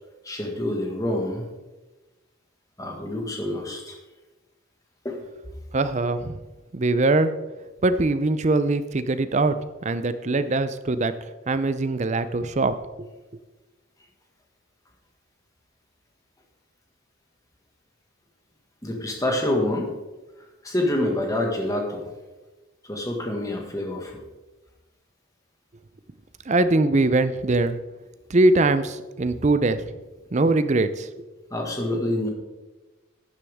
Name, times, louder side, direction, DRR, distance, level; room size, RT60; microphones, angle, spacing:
voice 1, 0.2-1.5 2.8-4.0 5.0-5.2 18.8-19.9 20.6-22.1 22.9-24.1 31.5-32.3, left 1 dB, 15° left, 1 dB, 1.7 m, -27 dB
voice 2, 5.7-6.4 6.7-7.3 7.8-11.1 11.5-13.1 26.5-27.8 28.3-29.8 30.3-31.3, right 2 dB, 35° right, 12 dB, 0.5 m, -22 dB
11.5 x 10.0 x 3.6 m, 1.2 s
head